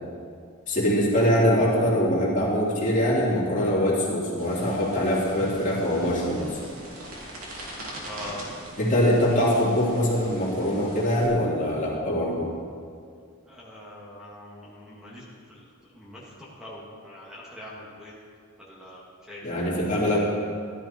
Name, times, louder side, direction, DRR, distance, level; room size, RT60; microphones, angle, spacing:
voice 1, 0.7-6.6 8.8-12.5 19.4-20.2, equal, 40° left, -5 dB, 2.9 m, -23 dB
sound 1, 4.4-11.3, right 1 dB, 90° right, 2.9 m, -42 dB
voice 2, 7.9-8.5 13.5-18.1 18.7-19.7, left 1 dB, 5° right, -6 dB, 2.0 m, -43 dB
15.0 x 12.0 x 4.4 m, 2.2 s
head